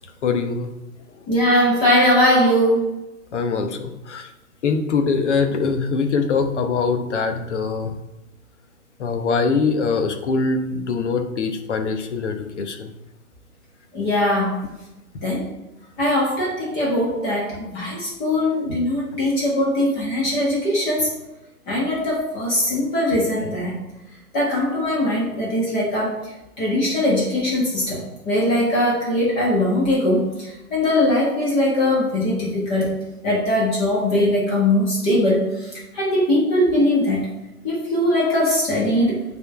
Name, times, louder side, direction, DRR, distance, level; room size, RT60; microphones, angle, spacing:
voice 1, 0.2-0.7 3.3-4.3 4.6-7.9 9.0-12.9, left 4 dB, 50° left, 6 dB, 1.0 m, -23 dB
voice 2, 1.3-2.8 13.9-14.6 15.2-15.5 16.0-21.1 21.7-23.8 24.3-26.1 26.6-32.9 33.2-35.7 35.9-37.2 37.6-39.2, left 1 dB, 20° left, -4 dB, 1.5 m, -20 dB
8.1 x 3.9 x 4.4 m, 0.97 s
figure-of-eight pair, 120°, 45 cm